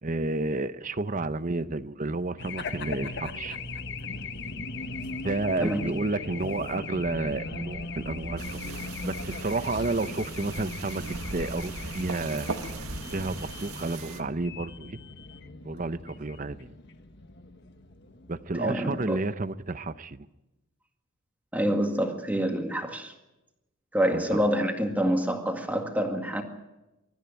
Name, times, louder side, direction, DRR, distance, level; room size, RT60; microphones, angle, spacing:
voice 1, 0.0-3.6 5.2-12.5 13.1-15.0 15.6-16.7 18.3-20.3 24.1-24.2, right 2 dB, 35° right, 0.7 m, -31 dB
Race car auto racing / Alarm, 2.4-19.3, left 3 dB, 50° left, 1.3 m, -39 dB
sound 1, 8.4-14.2, right 3 dB, 80° right, 1.8 m, -39 dB
voice 2, 18.6-19.2 21.5-23.1 23.9-26.4, equal, 5° right, 2.0 m, -27 dB
24.0 x 14.0 x 9.3 m
head